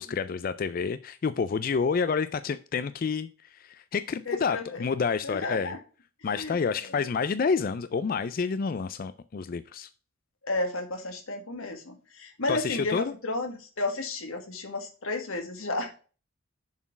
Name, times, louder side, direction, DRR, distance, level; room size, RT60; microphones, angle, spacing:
voice 1, 0.0-5.8 6.2-9.9 12.5-13.1, left 5 dB, 45° left, 13 dB, 0.3 m, -29 dB
voice 2, 4.3-4.8 5.2-5.8 6.3-6.6 10.4-15.9, left 2 dB, 90° left, 5 dB, 1.7 m, -32 dB
7.1 x 4.4 x 5.8 m, 0.36 s
head